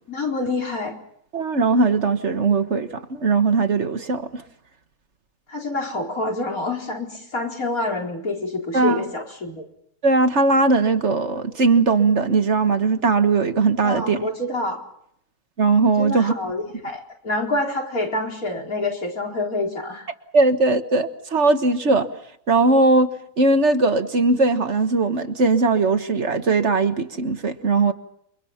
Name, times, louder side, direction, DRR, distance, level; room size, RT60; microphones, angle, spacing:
voice 1, 0.1-1.0 5.5-9.6 13.8-14.8 16.0-20.1, left 2 dB, 75° left, 4.8 m, -27 dB
voice 2, 1.3-4.4 8.7-9.0 10.0-14.2 15.6-16.3 20.3-22.1 22.5-27.9, right 3 dB, 55° right, 1.7 m, -19 dB
29.0 x 25.5 x 5.9 m
omnidirectional pair, 1.5 m